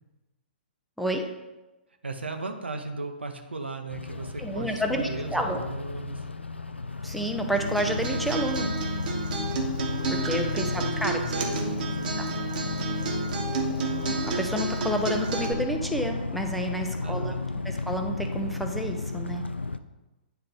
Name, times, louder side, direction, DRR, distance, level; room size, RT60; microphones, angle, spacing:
voice 1, 2.0-6.3 10.1-10.3 10.7-12.2 17.0-17.4, right 3 dB, 80° right, 5 dB, 0.8 m, -36 dB
sound 1, 3.9-19.8, left 3 dB, 90° left, 0.3 m, -33 dB
voice 2, 4.4-5.6 7.0-8.7 10.1-11.2 12.2-12.3 14.1-17.3 17.6-19.4, equal, ahead, 3 dB, 0.6 m, -30 dB
Acoustic guitar, 7.5-15.5, right 4 dB, 50° right, 1.1 m, -31 dB
9.2 x 3.3 x 3.9 m, 1.1 s
figure-of-eight pair, 115°, 6 cm